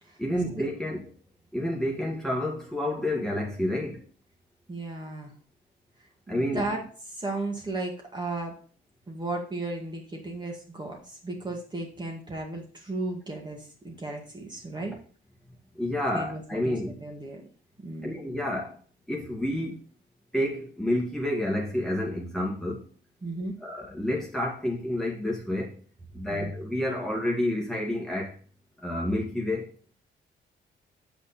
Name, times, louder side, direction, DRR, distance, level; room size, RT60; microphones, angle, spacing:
voice 1, 0.2-1.0 1.5-4.0 6.3-6.7 15.8-16.9 18.0-18.7 19.1-19.8 20.3-22.8 23.6-25.7 26.1-28.3 28.8-29.7, left 1 dB, ahead, -2 dB, 2.0 m, -29 dB
voice 2, 4.7-5.3 6.3-6.8 7.1-8.6 9.1-15.0 16.1-17.4 17.8-18.2 23.2-23.5 26.2-26.5, right 2 dB, 20° right, 0 dB, 2.1 m, -35 dB
7.2 x 5.1 x 4.3 m, 0.43 s
cardioid pair, 90°, 20 cm